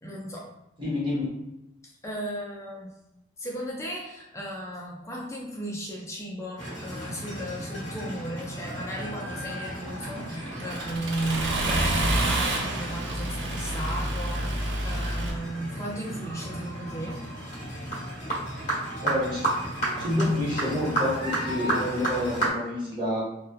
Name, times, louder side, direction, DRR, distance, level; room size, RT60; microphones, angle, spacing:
voice 1, 0.0-0.5 1.8-3.0 3.4-17.2, right 1 dB, 15° left, -2 dB, 0.4 m, -35 dB
voice 2, 0.8-1.3 18.5-18.7 19.0-19.4 20.0-23.2, left 1 dB, 25° right, -8 dB, 1.0 m, -28 dB
sound 1, 6.6-22.5, right 2 dB, 40° left, 1.1 m, -33 dB
Accelerating revving vroom, 10.0-15.3, right 1 dB, 75° right, 0.5 m, -29 dB
2.8 x 2.3 x 2.2 m, 0.89 s
head